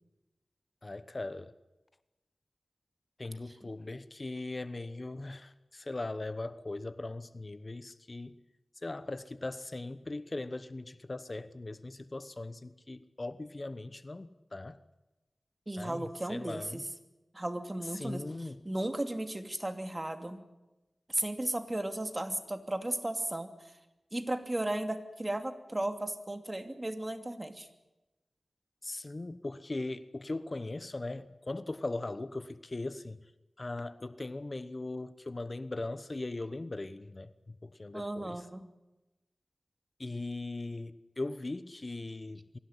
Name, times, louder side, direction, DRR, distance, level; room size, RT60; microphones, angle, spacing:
voice 1, 0.8-1.5 3.2-8.4 8.8-14.8 15.8-16.8 17.9-18.6 28.8-33.3 33.6-38.5 40.0-42.6, left 2 dB, 45° left, 14 dB, 1.1 m, -39 dB
voice 2, 15.7-16.8 17.3-18.2 18.6-20.4 21.1-23.5 24.1-27.7 37.9-38.7, right 1 dB, 25° right, 7 dB, 2.7 m, -35 dB
24.0 x 16.0 x 10.0 m, 1.0 s
cardioid pair, 45°, 0 cm